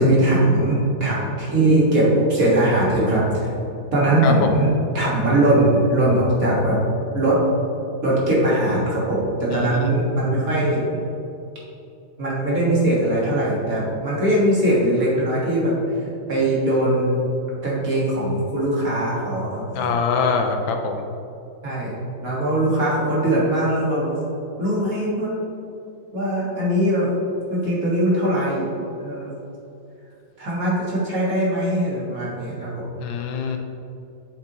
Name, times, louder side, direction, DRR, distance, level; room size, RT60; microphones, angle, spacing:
voice 1, 0.0-3.6 3.9-6.8 7.1-7.5 8.0-10.9 12.2-15.8 16.3-17.3 17.6-19.9 21.6-21.9 22.2-24.2 24.6-25.4 26.1-27.1 27.5-28.7 29.0-29.3 30.4-32.9 33.4-33.6, right 1 dB, 45° right, -6 dB, 2.1 m, -20 dB
voice 2, 4.2-4.6 9.5-9.9 19.7-21.0 33.0-33.6, left 5 dB, 75° left, 4 dB, 1.4 m, -24 dB
8.1 x 6.8 x 3.0 m, 2.8 s
omnidirectional pair, 2.2 m